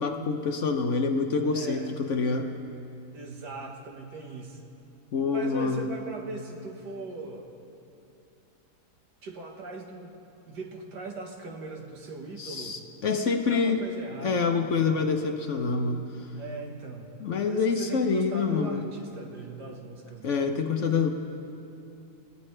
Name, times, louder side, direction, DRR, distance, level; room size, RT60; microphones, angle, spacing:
voice 1, 0.0-2.5 5.1-5.9 12.4-13.8 14.2-16.0 17.2-18.8 20.2-21.1, left 4 dB, 55° left, 5 dB, 1.0 m, -26 dB
voice 2, 1.5-1.9 3.1-4.6 5.3-7.5 9.2-10.2 10.5-12.8 13.2-14.9 16.3-17.1 17.5-20.3, right 3 dB, 85° right, 2 dB, 2.1 m, -39 dB
29.0 x 14.0 x 3.3 m, 2.8 s
omnidirectional pair, 1.8 m